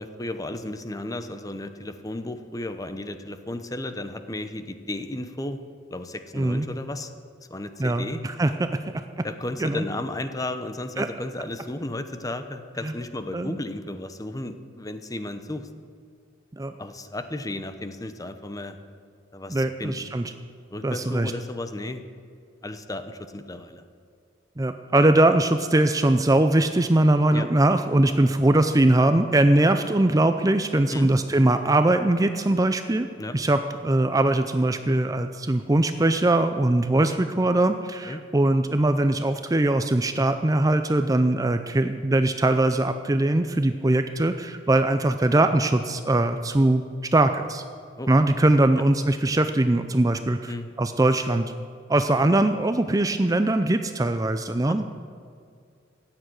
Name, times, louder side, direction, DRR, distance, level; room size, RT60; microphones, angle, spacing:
voice 1, 0.0-5.6 5.9-7.1 7.5-8.2 9.2-15.7 16.8-18.8 19.3-20.0 20.7-22.0 22.6-23.8 27.3-27.5 30.9-31.1 33.2-33.4 37.0-37.1 38.1-38.2 48.0-48.1 50.5-50.7 54.7-54.8, left 1 dB, 20° left, 9 dB, 0.8 m, -34 dB
voice 2, 6.3-6.7 7.8-8.7 9.2-9.3 9.6-9.9 11.0-11.1 12.8-12.9 13.3-13.6 16.6-16.7 19.5-20.3 20.8-21.3 24.6-33.1 33.3-46.8 47.1-47.6 48.1-50.5 50.8-51.5 51.9-54.8, right 1 dB, 20° right, 9 dB, 0.5 m, -21 dB
14.5 x 8.9 x 9.3 m, 2.3 s
head